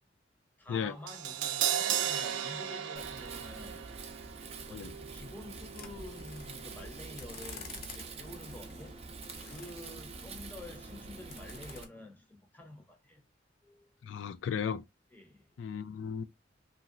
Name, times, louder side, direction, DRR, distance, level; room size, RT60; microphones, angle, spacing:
voice 1, 0.6-3.9 4.4-13.3 13.6-13.9 15.1-15.6, left 2 dB, 10° left, 0.7 m, -49 dB
Crash cymbal, 1.1-7.2 7.5-7.6, right 10 dB, 85° right, 0.4 m, -36 dB
Wind, 3.0-11.8, right 4 dB, 35° right, 0.5 m, -46 dB
sound 1, 5.8-11.9, left 4 dB, 50° left, 0.7 m, -51 dB
voice 2, 14.0-14.8 15.6-16.2, left 7 dB, 85° left, 0.3 m, -35 dB
3.0 x 2.7 x 2.5 m
head